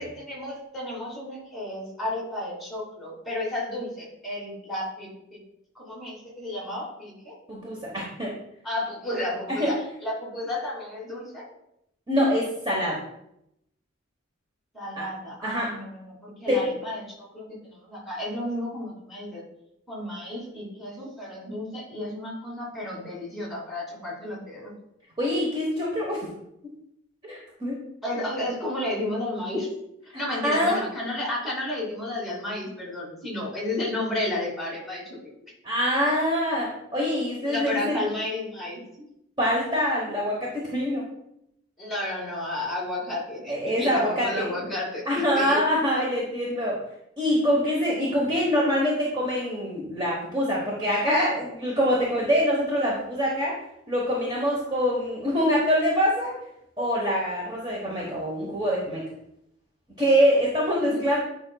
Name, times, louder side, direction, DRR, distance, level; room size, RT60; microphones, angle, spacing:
voice 1, 0.0-5.4 5.7-7.3 8.6-11.4 14.7-19.4 19.9-24.7 28.0-29.7 30.1-35.3 37.4-38.8 41.8-45.6 60.8-61.0, left 1 dB, ahead, -6 dB, 2.6 m, -32 dB
voice 2, 7.5-8.3 9.6-9.7 12.1-13.0 15.0-15.1 15.4-15.7 16.5-16.8 25.2-26.2 27.2-27.8 30.4-30.8 35.6-37.9 39.4-41.0 43.5-44.5 45.1-46.8 47.2-53.5 53.9-56.3 56.8-59.0 60.0-61.2, equal, 25° right, -4 dB, 1.1 m, -24 dB
9.4 x 5.2 x 2.3 m, 0.80 s
head